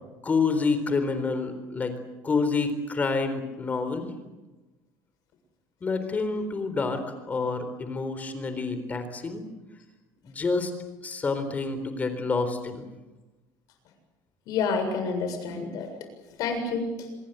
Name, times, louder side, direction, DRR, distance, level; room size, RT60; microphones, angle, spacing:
voice 1, 0.2-2.0 2.2-4.1 5.8-9.4 10.2-10.7 11.0-12.8, left 4 dB, 20° left, 9 dB, 3.9 m, -28 dB
voice 2, 14.5-15.9 16.4-17.1, left 4 dB, 60° left, 6 dB, 7.3 m, -28 dB
26.5 x 21.5 x 8.2 m, 1.1 s
cardioid pair, 145°, 7 cm